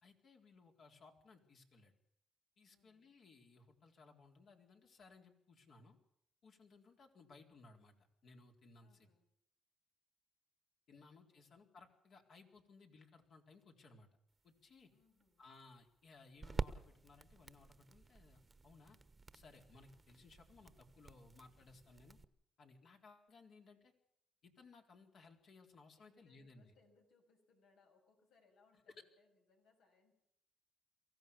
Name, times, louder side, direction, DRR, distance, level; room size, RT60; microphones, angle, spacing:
voice 1, 0.0-1.9 2.6-6.0 6.4-9.1 10.9-14.1 14.4-14.9 15.4-19.0 19.3-22.2 22.6-23.9 24.4-26.7, left 3 dB, 60° left, 3 dB, 4.1 m, -62 dB
voice 2, 2.7-3.1 8.8-9.3 10.9-11.5 14.9-15.4 25.9-30.1, left 4 dB, 85° left, 3 dB, 6.3 m, -73 dB
sound 1, 14.3-22.2, right 3 dB, 25° right, 1.1 m, -49 dB
23.5 x 15.5 x 7.0 m, 0.74 s
cardioid pair, 90°, 0 cm